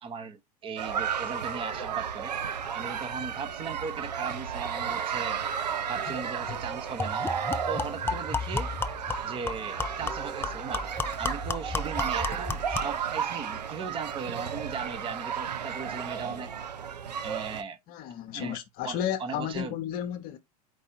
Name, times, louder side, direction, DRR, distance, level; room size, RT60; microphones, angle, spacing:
voice 1, 0.0-2.3 2.7-5.4 5.9-7.3 7.7-8.7 9.2-10.8 11.2-16.5 17.2-17.8 18.3-18.6 18.8-19.7, right 5 dB, 25° right, 0.8 m, -38 dB
sound 1, 0.6-3.4, right 6 dB, 60° right, 3.3 m, -45 dB
sound 2, 0.8-17.6, right 7 dB, 90° right, 0.7 m, -33 dB
sound 3, 6.1-6.2 6.5-6.6 7.0-13.0, left 3 dB, 10° left, 0.4 m, -33 dB
voice 2, 17.9-20.4, left 10 dB, 45° left, 0.8 m, -33 dB
4.7 x 2.6 x 4.3 m
hypercardioid pair, 100°, 20 cm